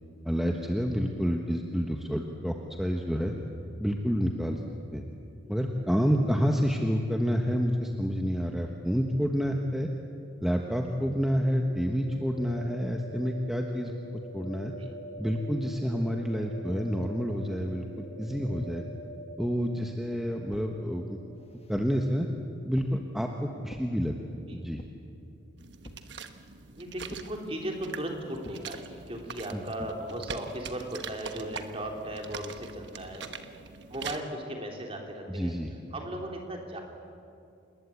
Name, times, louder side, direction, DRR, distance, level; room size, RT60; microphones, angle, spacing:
voice 1, 0.2-3.3 3.8-4.6 4.9-5.0 5.5-9.9 10.4-14.7 15.2-18.8 19.4-21.2 21.7-22.3 22.6-24.1 24.5-24.8 29.5-29.6 35.3-35.7, equal, ahead, 2 dB, 1.2 m, -29 dB
sound 1, 11.4-23.1, equal, 70° left, 6.5 m, -45 dB
sound 2, 20.5-20.8 21.3-22.0 22.8-23.1 23.7-23.9 24.8-25.1 25.8-26.1 27.1-27.4 28.4-28.7, left 1 dB, 30° left, 1.1 m, -48 dB
sound 3, 25.6-34.2, right 5 dB, 60° right, 1.3 m, -43 dB
voice 2, 26.6-33.2 33.9-35.5 35.9-36.8, right 1 dB, 30° right, 2 dB, 3.5 m, -37 dB
28.0 x 20.5 x 8.6 m, 2.6 s
head